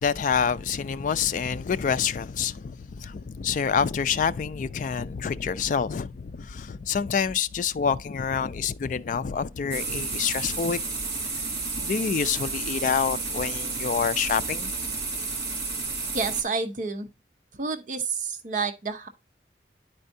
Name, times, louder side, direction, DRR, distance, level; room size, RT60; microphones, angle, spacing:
voice 1, 0.0-10.8 11.8-14.7, left 6 dB, 45° left, 0.3 m, -27 dB
sound 1, 9.7-16.4, right 3 dB, 60° right, 2.2 m, -31 dB
voice 2, 16.1-17.1 17.6-19.1, right 4 dB, 45° right, 0.6 m, -29 dB
10.0 x 4.4 x 2.6 m
head